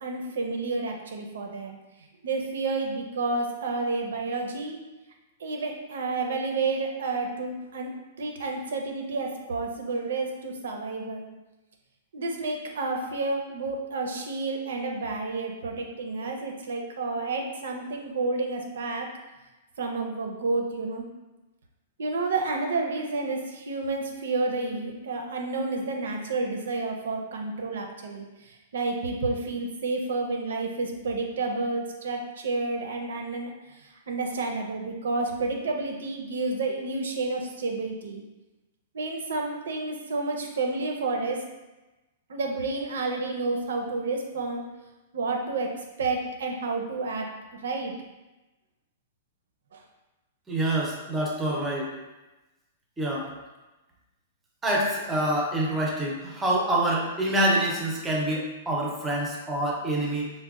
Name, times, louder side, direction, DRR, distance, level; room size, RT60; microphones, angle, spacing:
voice 1, 0.0-4.8 5.4-7.9 8.2-11.3 12.1-19.1 19.8-21.0 22.0-38.2 38.9-41.4 42.3-44.6 45.1-47.9 49.7-49.8, right 3 dB, 85° right, 2 dB, 0.5 m, -30 dB
voice 2, 50.5-51.9 53.0-53.3 54.6-60.3, right 1 dB, 10° right, -3 dB, 0.5 m, -26 dB
4.0 x 2.1 x 2.3 m, 1.1 s
hypercardioid pair, 160°, 0 cm